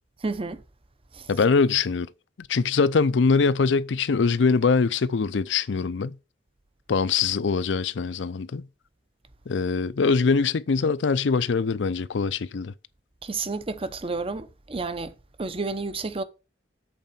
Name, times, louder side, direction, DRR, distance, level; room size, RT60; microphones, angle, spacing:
voice 1, 0.2-0.6 1.1-1.3 13.2-16.2, right 3 dB, 30° right, 0.7 m, -31 dB
voice 2, 1.3-2.1 2.4-6.2 6.9-8.7 9.5-12.7, left 4 dB, 75° left, 0.5 m, -23 dB
7.9 x 4.2 x 7.0 m
head